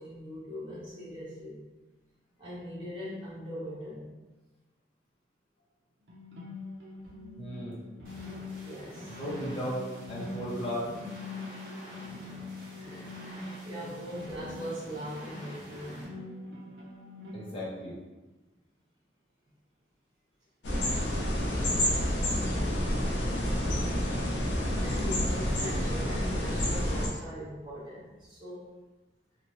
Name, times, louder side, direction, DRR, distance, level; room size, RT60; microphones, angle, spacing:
voice 1, 0.0-1.6 2.4-4.1 8.6-9.2 12.7-16.1 24.8-28.7, equal, 30° right, -10 dB, 1.1 m, -41 dB
sound 1, 6.1-17.5, left 2 dB, 85° right, 0.6 m, -43 dB
voice 2, 7.4-7.8 9.1-9.8 10.1-10.8 17.3-18.0, equal, 30° left, -7 dB, 0.6 m, -35 dB
sound 2, 8.0-16.0, equal, 55° right, 1.2 m, -48 dB
sound 3, 20.6-27.1, equal, 90° left, 0.6 m, -29 dB
2.8 x 2.1 x 3.0 m, 1.1 s
head